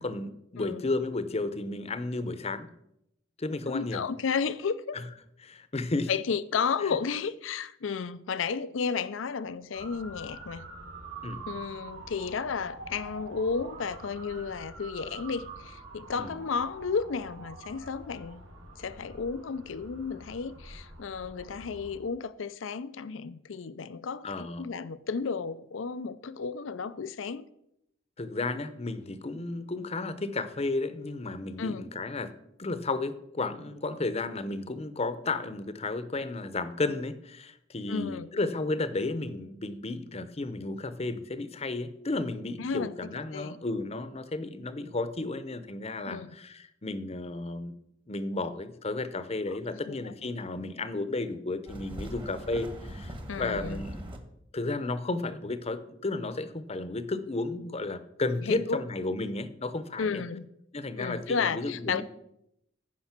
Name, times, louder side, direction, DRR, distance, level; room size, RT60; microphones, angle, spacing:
voice 1, 0.0-2.7 3.4-4.0 4.9-5.0 5.4-6.1 6.8-7.0 11.2-11.4 16.2-16.4 24.2-24.7 28.2-32.3 32.6-47.7 48.1-54.0 54.5-60.2 60.7-62.0, left 2 dB, 35° left, 0.8 m, -33 dB
voice 2, 3.7-5.0 6.1-10.6 11.5-18.4 18.8-27.5 31.6-31.8 37.9-38.3 42.6-42.9 43.3-43.6 46.1-46.3 49.9-50.1 53.3-53.8 58.4-58.8 60.0-60.5 61.0-62.0, left 5 dB, 80° left, 0.5 m, -33 dB
Motor vehicle (road) / Siren, 9.7-22.0, right 2 dB, 75° right, 3.8 m, -46 dB
sound 1, 51.7-54.2, equal, 25° right, 1.4 m, -40 dB
14.5 x 5.3 x 5.9 m
head